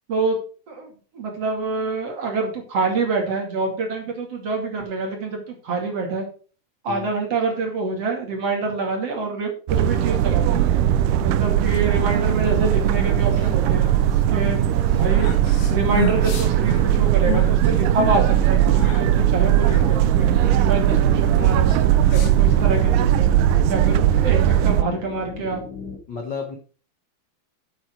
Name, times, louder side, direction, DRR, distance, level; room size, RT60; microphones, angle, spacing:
voice 1, 1.1-6.2 6.8-10.6 11.2-13.8 14.3-15.3 15.7-20.3 20.6-21.7 22.1-23.3 23.7-25.6, right 3 dB, 45° right, 1 dB, 3.1 m, -26 dB
sound 1, 9.7-24.8, right 11 dB, 85° right, 1.9 m, -18 dB
sound 2, 11.6-22.8, left 4 dB, 85° left, 4.0 m, -34 dB
sound 3, 15.9-26.0, left 4 dB, 50° left, 1.2 m, -38 dB
voice 2, 26.1-26.6, left 5 dB, 70° left, 3 dB, 1.0 m, -33 dB
8.4 x 8.3 x 4.5 m, 0.38 s
omnidirectional pair, 4.5 m